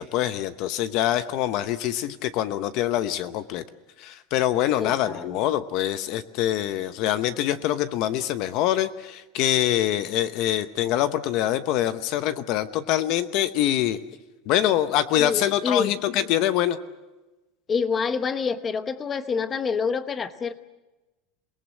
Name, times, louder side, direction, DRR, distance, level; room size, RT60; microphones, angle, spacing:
voice 1, 0.0-3.6 4.0-14.0 14.5-16.8, left 12 dB, 50° left, 12 dB, 0.8 m, -24 dB
voice 2, 4.8-5.4 15.2-15.9 17.7-20.5, left 5 dB, 20° left, 11 dB, 0.9 m, -27 dB
28.0 x 19.0 x 7.3 m, 1.1 s
supercardioid pair, 160°, 0 cm